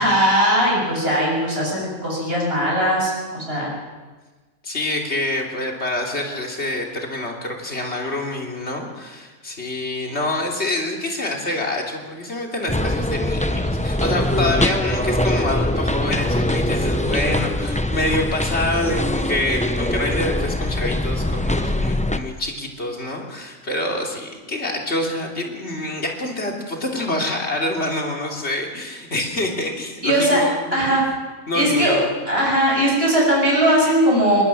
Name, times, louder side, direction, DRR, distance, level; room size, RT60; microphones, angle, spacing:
voice 1, 0.0-3.7 30.0-30.4 30.7-31.0 31.5-32.0 32.3-34.4, equal, 40° right, -3 dB, 7.8 m, -19 dB
voice 2, 4.6-31.0 31.5-32.1, left 1 dB, 45° left, 0 dB, 3.4 m, -26 dB
sound 1, 12.7-22.2, left 1 dB, 5° left, 0.6 m, -22 dB
21.5 x 19.5 x 6.1 m, 1.3 s
omnidirectional pair, 1.5 m